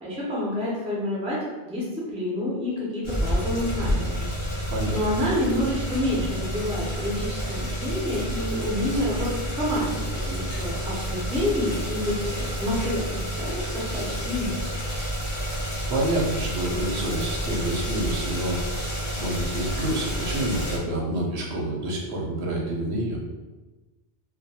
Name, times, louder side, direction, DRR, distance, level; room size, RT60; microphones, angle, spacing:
voice 1, 0.0-1.4 1.7-1.8 2.1-4.1 4.6-14.6, left 1 dB, 10° right, -6 dB, 0.4 m, -28 dB
sound 1, 3.0-20.8, equal, 30° left, 0.6 m, -30 dB
voice 2, 15.9-23.2, right 1 dB, 75° right, -2 dB, 0.8 m, -28 dB
2.2 x 2.2 x 2.7 m, 1.2 s
omnidirectional pair, 1.1 m